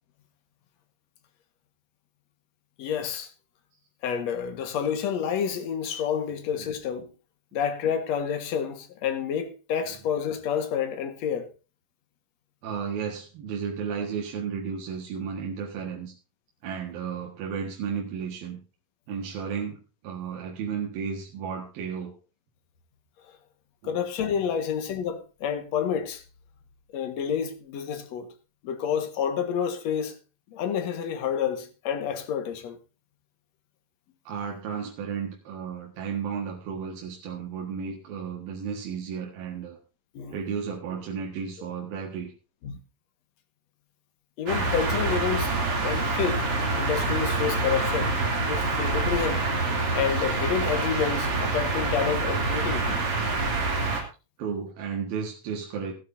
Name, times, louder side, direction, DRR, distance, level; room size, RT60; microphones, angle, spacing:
voice 1, 2.8-3.3 4.0-7.1 7.5-11.5 23.8-26.2 26.9-28.3 28.6-30.2 30.5-32.8 40.1-40.4 42.6-42.8 44.4-46.5 46.8-48.2 48.5-49.4 49.9-53.0, left 8 dB, 55° left, 2.4 m, -29 dB
voice 2, 12.6-16.1 16.6-18.6 19.1-22.1 23.8-23.9 24.3-24.5 34.3-39.8 40.3-42.3 54.4-55.9, right 6 dB, 80° right, 3.5 m, -33 dB
sound 1, 44.5-54.0, right 3 dB, 40° right, 3.6 m, -26 dB
17.0 x 12.5 x 2.7 m
omnidirectional pair, 4.1 m